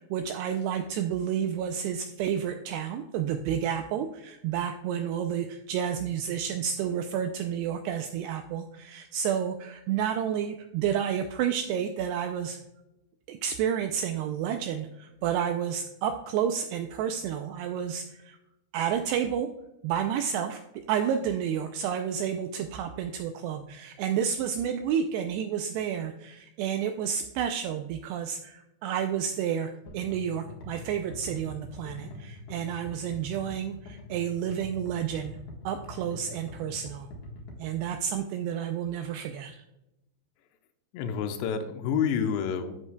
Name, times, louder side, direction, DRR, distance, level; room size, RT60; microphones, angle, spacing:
voice 1, 0.0-12.6 13.3-18.4 18.7-19.5 19.8-20.6 20.9-35.4 35.7-37.1 37.6-39.6, right 8 dB, 85° right, 6 dB, 2.4 m, -30 dB
sound 1, 29.9-37.8, left 2 dB, 60° left, 2.2 m, -44 dB
voice 2, 40.9-42.9, left 7 dB, 85° left, 7 dB, 2.8 m, -29 dB
11.0 x 7.4 x 2.2 m, 0.91 s
omnidirectional pair, 5.1 m